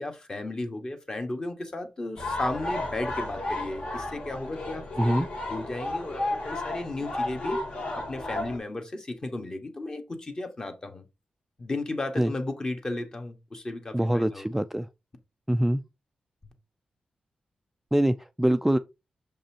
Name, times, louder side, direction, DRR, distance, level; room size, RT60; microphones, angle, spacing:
voice 1, 0.0-7.6 7.9-11.0 11.6-14.4, left 2 dB, 30° left, 1.3 m, -34 dB
sound 1, 2.2-8.6, left 2 dB, 60° left, 2.5 m, -32 dB
voice 2, 13.9-14.9 15.5-15.8 17.9-18.8, right 1 dB, 5° right, 0.3 m, -24 dB
6.9 x 5.3 x 2.8 m
wide cardioid pair, 135°, 3 cm